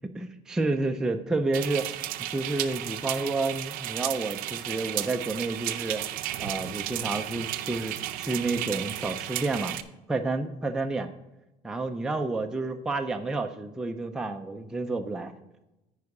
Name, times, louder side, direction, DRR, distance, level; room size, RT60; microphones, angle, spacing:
voice 1, 0.2-1.9 2.3-6.1 6.4-9.8 10.1-11.1 11.6-15.3, right 3 dB, 5° right, 4 dB, 0.4 m, -30 dB
sound 1, 1.5-9.8, right 14 dB, 70° right, 0.5 m, -34 dB
9.6 x 4.8 x 4.8 m, 0.96 s
cardioid pair, 170°, 15 cm